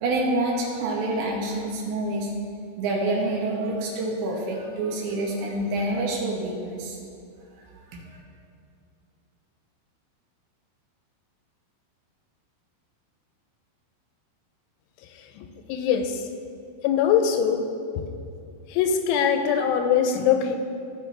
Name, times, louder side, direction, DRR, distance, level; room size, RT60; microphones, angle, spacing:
voice 1, 0.0-2.3 2.8-7.0 7.8-7.9 8.1-8.2, right 2 dB, 75° right, -1 dB, 3.3 m, -27 dB
voice 2, 15.7-16.2 16.8-17.6 18.0-18.1 18.7-20.6, left 8 dB, 85° left, 6 dB, 3.0 m, -22 dB
17.5 x 5.9 x 3.3 m, 2.5 s
omnidirectional pair, 5.5 m